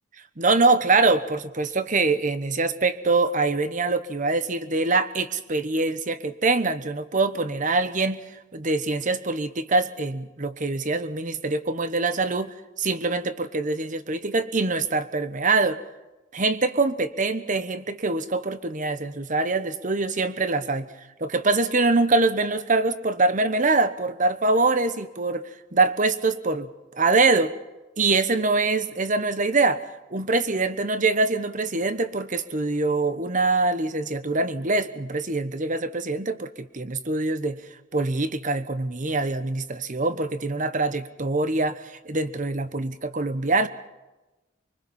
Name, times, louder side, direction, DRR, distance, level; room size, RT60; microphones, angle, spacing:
voice 1, 0.4-8.2 8.5-15.8 16.3-20.9 21.2-25.4 25.7-26.7 27.0-27.5 28.0-29.8 30.1-37.6 37.9-43.7, right 3 dB, 40° right, 12 dB, 1.1 m, -24 dB
25.0 x 23.5 x 5.6 m, 1.1 s
head